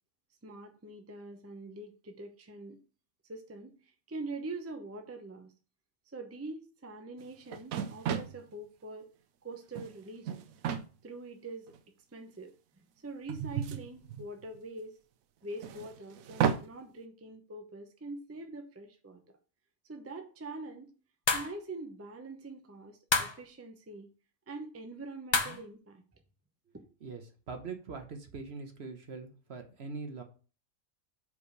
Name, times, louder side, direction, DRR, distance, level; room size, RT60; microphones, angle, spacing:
voice 1, 0.4-2.8 3.3-5.5 6.1-9.1 9.4-10.4 11.0-11.7 12.1-12.5 13.0-15.0 15.4-19.2 19.9-20.9 21.3-24.1 24.5-26.0 26.7-26.8, right 2 dB, 15° right, 5 dB, 0.6 m, -44 dB
sound 1, 7.2-7.3 7.5-8.4 9.5-9.9 10.2-10.9 11.7-11.8 13.3-14.6 15.6-16.7, right 8 dB, 80° right, 1.0 m, -33 dB
sound 2, 21.3-21.5 23.1-23.4 25.3-25.6, left 4 dB, 40° left, 0.4 m, -28 dB
voice 2, 27.5-30.2, right 4 dB, 55° right, 6 dB, 1.1 m, -42 dB
5.1 x 5.0 x 5.1 m, 0.37 s
omnidirectional pair, 1.5 m